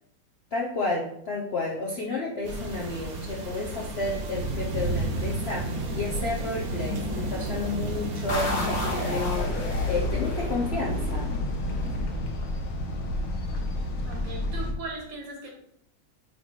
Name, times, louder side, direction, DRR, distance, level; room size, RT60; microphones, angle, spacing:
voice 1, 0.5-11.3, left 3 dB, 60° left, -2 dB, 0.7 m, -31 dB
sound 1, 2.4-9.2, right 1 dB, 55° right, 1.4 m, -31 dB
sound 2, 8.3-12.8, left 1 dB, 40° left, 1.7 m, -33 dB
sound 3, 9.1-14.7, left 2 dB, 75° left, 1.7 m, -30 dB
voice 2, 14.1-15.5, right 3 dB, 75° right, -1 dB, 2.5 m, -38 dB
8.8 x 3.1 x 4.0 m, 0.73 s
omnidirectional pair, 2.0 m